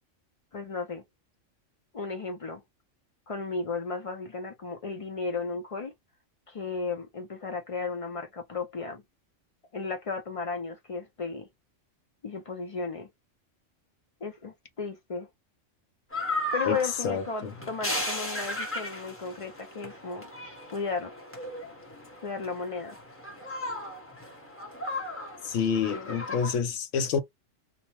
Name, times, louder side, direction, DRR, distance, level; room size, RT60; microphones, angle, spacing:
voice 1, 0.5-1.0 1.9-2.6 3.3-5.9 6.5-9.0 9.7-11.5 12.2-13.1 14.2-15.3 16.5-20.3 20.7-21.1 22.2-23.0 25.9-26.4, left 4 dB, 55° left, 0.3 m, -34 dB
sound 1, 16.1-26.5, left 1 dB, 15° left, 0.7 m, -36 dB
voice 2, 17.0-17.5 25.4-27.2, left 6 dB, 80° left, 1.0 m, -28 dB
2.8 x 2.0 x 2.9 m
omnidirectional pair, 1.3 m